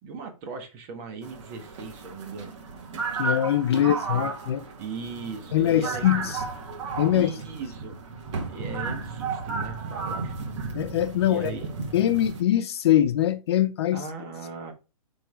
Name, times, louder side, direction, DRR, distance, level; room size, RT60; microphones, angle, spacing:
voice 1, 0.0-2.5 3.7-4.1 4.8-6.3 7.1-8.0 8.5-10.3 11.2-11.7 13.9-14.7, right 4 dB, 30° right, 1.4 m, -38 dB
sound 1, 1.2-12.4, right 4 dB, 50° right, 2.0 m, -34 dB
voice 2, 3.1-4.6 5.5-6.4 7.0-7.3 10.7-11.5 11.9-14.0, left 12 dB, 45° left, 0.5 m, -23 dB
5.9 x 3.7 x 4.5 m
hypercardioid pair, 155°, 19 cm